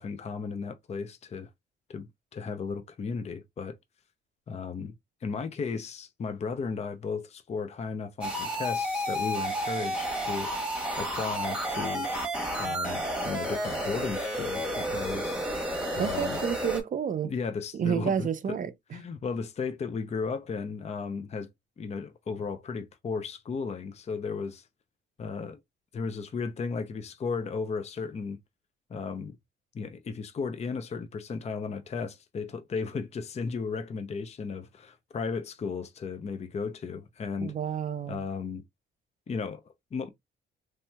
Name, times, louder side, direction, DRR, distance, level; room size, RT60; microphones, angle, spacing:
voice 1, 0.0-1.5 1.9-3.7 4.5-5.0 5.2-10.5 11.0-12.1 12.6-15.4 16.0-16.4 17.2-18.3 18.9-21.5 21.8-24.7 25.2-25.6 25.9-28.4 28.9-29.4 29.7-37.5 38.1-38.6 39.3-40.1, left 5 dB, 35° left, 0.5 m, -35 dB
sound 1, 8.2-16.8, equal, 5° right, 1.2 m, -31 dB
voice 2, 16.0-17.3 17.7-18.7 37.4-38.3, right 7 dB, 40° right, 0.5 m, -30 dB
3.2 x 2.8 x 2.2 m
cardioid pair, 90°, 20 cm